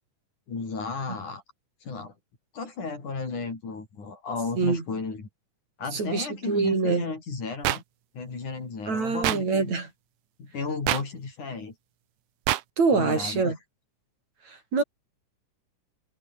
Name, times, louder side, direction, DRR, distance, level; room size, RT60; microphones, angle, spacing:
voice 1, 0.5-1.4 1.8-2.1 2.5-5.3 5.8-7.8 8.1-9.7 10.4-11.8 12.9-13.5, left 4 dB, 75° left, 7.4 m, -34 dB
voice 2, 5.9-7.1 8.9-9.9 12.8-13.6 14.5-14.8, right 4 dB, 60° right, 6.6 m, -25 dB
sound 1, 7.6-7.8 9.2-9.4 10.9-11.0 12.5-12.6, right 14 dB, 90° right, 2.6 m, -24 dB
omnidirectional pair, 3.5 m